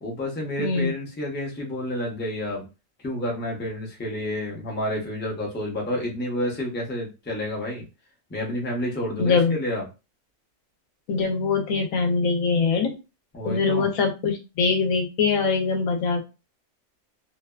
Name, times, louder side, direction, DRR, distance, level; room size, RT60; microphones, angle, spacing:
voice 1, 0.0-2.7 3.0-7.9 8.3-9.8 13.3-13.9, left 1 dB, 15° left, -2 dB, 0.4 m, -29 dB
voice 2, 0.6-0.9 9.2-9.6 11.1-13.0 13.4-16.2, left 4 dB, 85° left, 5 dB, 1.0 m, -23 dB
2.6 x 2.2 x 2.3 m, 0.28 s
omnidirectional pair, 1.4 m